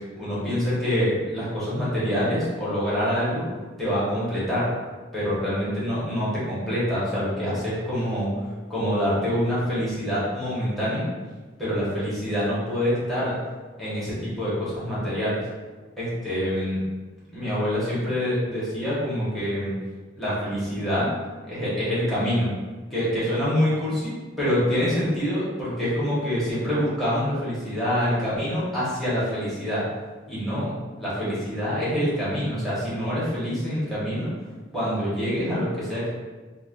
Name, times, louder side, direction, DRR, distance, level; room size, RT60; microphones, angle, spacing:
voice 1, 0.1-3.4 3.8-4.7 5.1-11.1 11.6-13.4 13.8-15.4 16.0-16.8 17.3-19.7 20.1-21.1 21.5-22.5 22.9-29.8 30.3-34.3 34.7-36.1, equal, ahead, -11 dB, 1.3 m, -26 dB
5.2 x 2.2 x 2.6 m, 1.3 s
head